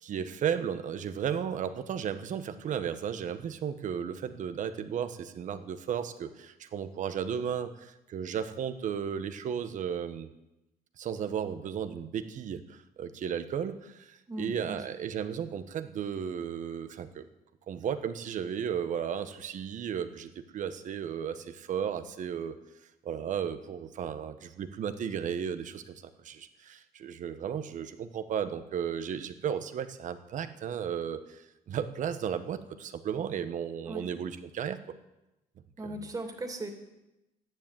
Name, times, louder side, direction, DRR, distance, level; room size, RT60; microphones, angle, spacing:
voice 1, 0.0-10.3 11.0-17.3 17.7-22.5 23.0-31.4 31.7-34.8, right 8 dB, 55° right, 10 dB, 1.2 m, -34 dB
voice 2, 14.3-14.8 33.8-34.0 35.8-36.7, right 1 dB, 25° right, 3 dB, 2.7 m, -38 dB
12.5 x 10.5 x 9.1 m, 0.94 s
cardioid pair, 115°, 15 cm